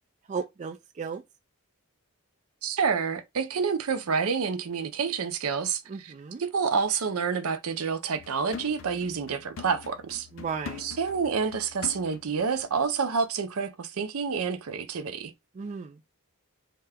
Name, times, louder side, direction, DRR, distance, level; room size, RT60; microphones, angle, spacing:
voice 1, 0.3-1.2 5.9-6.4 10.3-10.8 15.6-16.0, right 5 dB, 35° right, 0.3 m, -35 dB
voice 2, 2.6-6.1 6.4-10.3 10.8-15.3, right 5 dB, 80° right, 0.6 m, -28 dB
sound 1, 8.2-12.8 13.1-13.2, left 6 dB, 60° left, 0.4 m, -44 dB
2.8 x 2.2 x 3.4 m
head